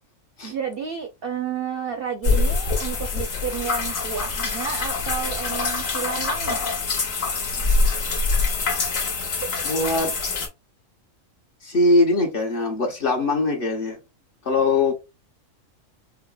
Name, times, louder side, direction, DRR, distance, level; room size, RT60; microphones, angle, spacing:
voice 1, 0.4-6.7, right 7 dB, 65° right, 0.6 m, -31 dB
sound 1, 2.2-10.5, left 3 dB, 75° left, 1.3 m, -24 dB
voice 2, 9.6-10.1 11.6-14.0 14.4-14.9, left 2 dB, 50° left, 0.9 m, -21 dB
4.7 x 2.0 x 2.2 m
omnidirectional pair, 1.4 m